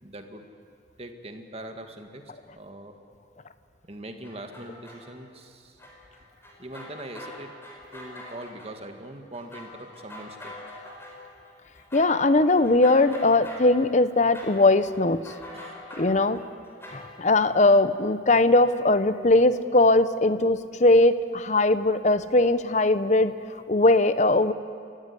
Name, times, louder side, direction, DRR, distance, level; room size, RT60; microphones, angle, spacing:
voice 1, 0.0-0.4 1.0-2.9 3.9-5.8 6.6-7.5 7.9-10.6 15.5-15.8, right 1 dB, 35° right, 5 dB, 1.9 m, -42 dB
sound 1, 4.2-5.1 5.8-8.8 9.0-17.7, left 1 dB, 15° left, 4.4 m, -44 dB
voice 2, 11.9-15.2 16.0-16.4 16.9-23.3 23.7-24.5, left 2 dB, 40° left, 13 dB, 0.9 m, -20 dB
30.0 x 15.0 x 9.8 m, 2.3 s
head